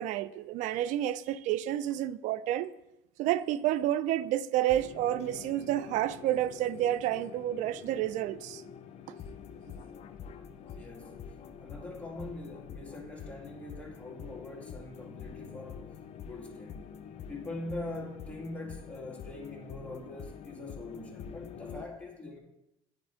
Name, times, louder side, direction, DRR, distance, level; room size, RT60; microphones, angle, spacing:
voice 1, 0.0-2.7 3.2-8.6, right 13 dB, 65° right, 0.4 m, -30 dB
sound 1, 4.7-21.9, left 7 dB, 55° left, 0.5 m, -46 dB
voice 2, 10.7-11.3 11.6-15.9 16.2-16.9 17.3-22.4, left 2 dB, 10° left, 2.0 m, -43 dB
9.8 x 4.3 x 3.7 m
supercardioid pair, 85°, 13 cm